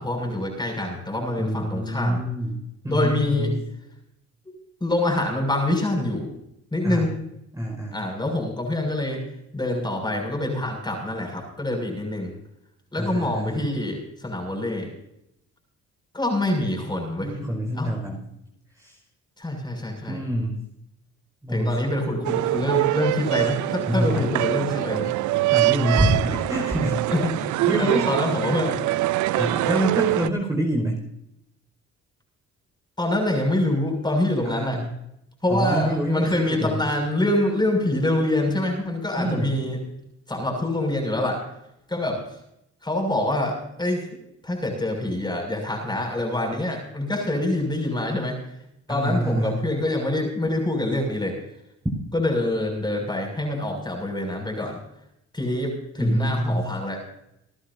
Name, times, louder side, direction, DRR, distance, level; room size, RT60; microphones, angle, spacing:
voice 1, 0.0-2.2 2.9-3.5 4.8-6.3 6.7-7.2 7.9-9.2 9.5-12.3 12.9-14.9 16.1-17.3 17.7-17.9 19.4-20.2 21.5-25.1 27.1-28.8 29.3-29.4 33.0-34.8 35.4-39.8 40.3-41.4 41.9-42.4 42.8-48.4 48.9-51.4 52.1-54.8 55.3-57.0, left 1 dB, 15° left, 2 dB, 6.6 m, -25 dB
voice 2, 1.4-3.6 6.8-7.1 7.5-8.0 12.9-13.7 17.2-18.3 18.8-19.0 20.1-20.6 21.4-21.8 23.9-24.3 25.3-27.1 27.7-28.1 29.4-31.0 34.5-34.9 35.5-36.8 39.2-39.6 48.9-49.7 56.0-56.7, equal, 10° right, -1 dB, 5.1 m, -26 dB
sound 1, 22.2-30.3, right 17 dB, 75° right, 0.5 m, -24 dB
28.0 x 11.5 x 2.7 m, 0.80 s
cardioid pair, 90°, 30 cm